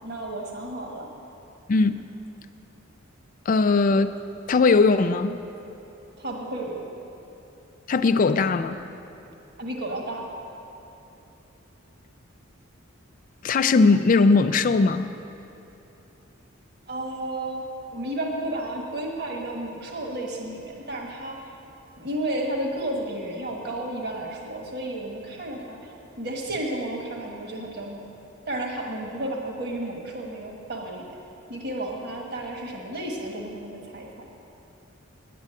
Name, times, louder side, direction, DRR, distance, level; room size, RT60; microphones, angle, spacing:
voice 1, 0.0-1.1 6.2-6.8 9.6-10.2 16.9-17.7 17.9-21.4 22.0-25.9 26.2-28.0 28.4-31.0 31.5-34.3, right 1 dB, 50° right, 0 dB, 1.5 m, -32 dB
voice 2, 3.5-4.1 4.5-5.4 7.9-8.8 13.4-15.1, left 4 dB, 40° left, 9 dB, 0.3 m, -19 dB
10.0 x 8.4 x 8.9 m, 2.9 s
head